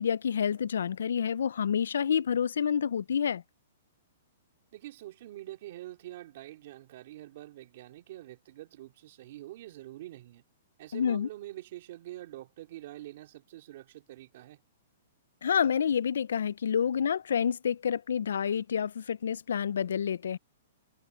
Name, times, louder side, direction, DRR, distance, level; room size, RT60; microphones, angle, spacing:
voice 1, 0.0-3.4 10.9-11.3 15.4-20.4, left 7 dB, 85° left, 0.3 m, -28 dB
voice 2, 4.7-10.4 10.8-14.6, right 15 dB, 40° right, 2.7 m, -45 dB
hypercardioid pair, 175°, 0 cm